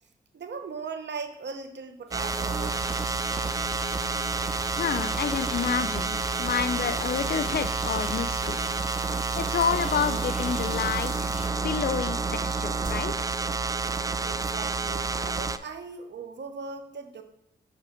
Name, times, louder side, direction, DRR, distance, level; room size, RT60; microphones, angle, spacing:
voice 1, 0.3-3.1 14.2-17.2, right 5 dB, 65° right, 7 dB, 0.8 m, -39 dB
sound 1, 2.1-11.5, left 2 dB, 30° left, 1.3 m, -41 dB
sound 2, 2.1-15.6, right 4 dB, 20° right, 0.3 m, -29 dB
voice 2, 4.8-8.6 9.3-11.3 11.6-13.1, left 7 dB, 55° left, 12 dB, 0.5 m, -29 dB
sound 3, 9.6-12.1 12.8-14.3 14.6-15.2, right 1 dB, 40° right, 1.8 m, -47 dB
6.5 x 3.3 x 5.0 m, 0.77 s
supercardioid pair, 45°, 20 cm